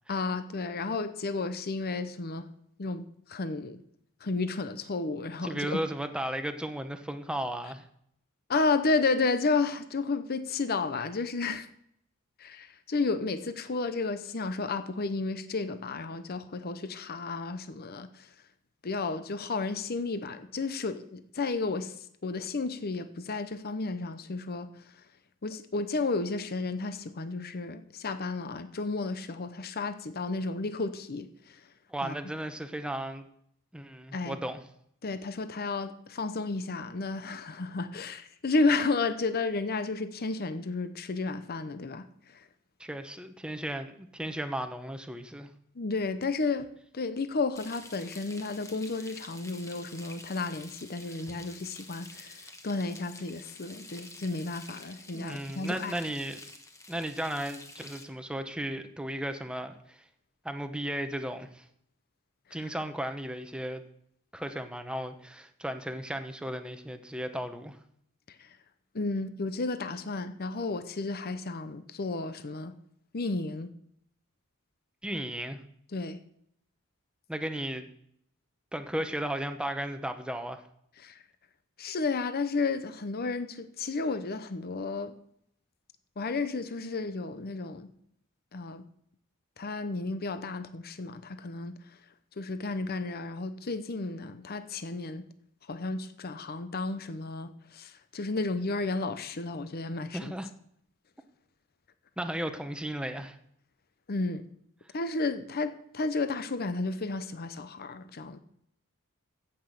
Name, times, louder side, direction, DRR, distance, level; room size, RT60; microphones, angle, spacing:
voice 1, 0.1-2.5 2.8-3.8 4.2-5.8 8.5-11.7 12.4-18.3 18.8-24.9 25.4-31.6 32.0-32.1 34.1-34.4 35.0-42.5 45.8-46.7 46.9-55.9 62.5-62.7 68.3-68.6 68.9-72.7 73.1-73.7 75.9-76.2 81.0-81.2 81.8-85.1 86.2-87.9 88.5-88.8 89.6-91.9 92.4-95.2 95.7-100.3 104.1-104.4 104.9-108.4, left 3 dB, 45° left, 0.7 m, -32 dB
voice 2, 5.4-7.9 31.9-33.3 33.7-34.6 42.8-45.5 55.1-56.4 56.9-60.0 60.4-61.6 62.5-63.8 64.3-67.8 75.0-75.6 77.3-77.9 78.7-80.6 100.1-100.5 102.2-103.4, right 1 dB, 5° right, 0.9 m, -35 dB
Frying (food), 47.5-58.0, left 2 dB, 15° left, 1.2 m, -49 dB
15.5 x 5.9 x 6.6 m
head